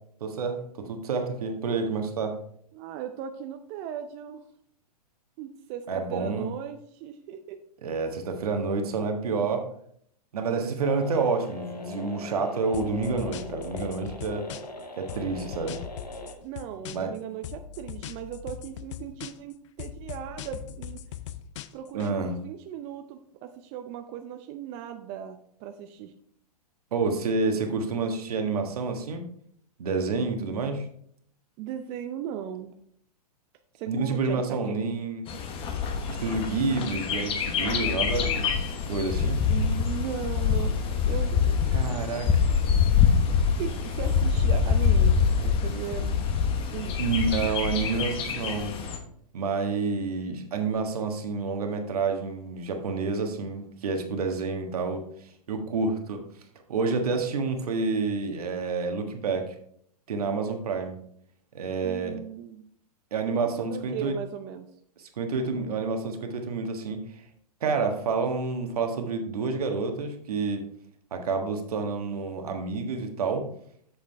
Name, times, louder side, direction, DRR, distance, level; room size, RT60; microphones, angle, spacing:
voice 1, 0.2-2.4 5.9-6.5 7.8-9.7 10.3-14.5 15.0-15.8 16.9-17.1 21.9-22.4 26.9-29.2 29.8-30.8 33.9-35.2 36.1-39.4 41.7-42.5 47.0-48.7 49.3-55.0 55.5-56.2 56.7-59.5 60.1-61.0 61.5-62.2 63.1-64.1 65.2-67.0 67.6-70.6 71.1-73.5, right 4 dB, 65° right, 5 dB, 1.5 m, -29 dB
voice 2, 2.7-4.4 5.4-7.6 16.4-21.0 21.7-26.1 31.6-32.8 33.7-34.8 39.5-42.1 43.6-46.2 46.7-47.0 61.8-62.6 63.3-64.7, right 9 dB, 35° right, 6 dB, 0.5 m, -37 dB
sound 1, 10.8-16.3, left 2 dB, 90° left, 1.3 m, -41 dB
sound 2, 12.7-14.8 15.1-17.2 17.4-19.5 19.8-22.1, left 10 dB, 50° left, 0.5 m, -40 dB
Bird, 35.3-49.0, left 6 dB, 25° left, 1.1 m, -25 dB
7.9 x 6.7 x 3.4 m, 0.65 s
hypercardioid pair, 115°, 20 cm